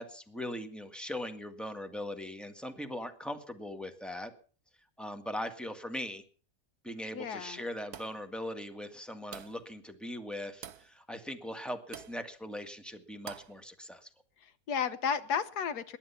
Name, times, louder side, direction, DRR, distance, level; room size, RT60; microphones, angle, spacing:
voice 1, 0.0-4.3 5.0-6.2 6.8-14.1, left 1 dB, ahead, 7 dB, 1.6 m, -40 dB
voice 2, 7.1-7.6 14.4-16.0, left 7 dB, 85° left, 13 dB, 1.6 m, -33 dB
sound 1, 7.9-8.3 9.3-9.7 10.6-10.9 11.9-12.2 13.3-13.6, right 9 dB, 80° right, 1.4 m, -46 dB
18.5 x 11.5 x 5.7 m, 0.41 s
omnidirectional pair, 1.7 m